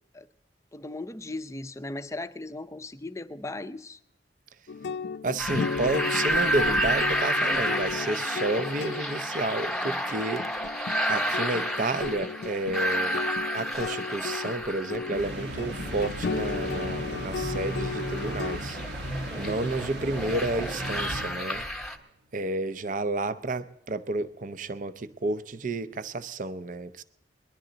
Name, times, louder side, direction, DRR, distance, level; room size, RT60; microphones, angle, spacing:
voice 1, 0.7-4.0 19.4-19.8, left 2 dB, 15° left, 10 dB, 0.5 m, -37 dB
sound 1, 4.7-18.6, left 5 dB, 70° left, 0.4 m, -35 dB
voice 2, 5.2-10.5 11.1-13.2 13.5-18.8 19.4-21.6 22.3-27.0, right 2 dB, 45° right, 14 dB, 0.5 m, -31 dB
sound 2, 5.4-22.0, equal, ahead, 0.9 m, -31 dB
sound 3, 15.1-21.8, right 1 dB, 75° right, 1.0 m, -36 dB
20.0 x 11.5 x 3.9 m, 0.81 s
head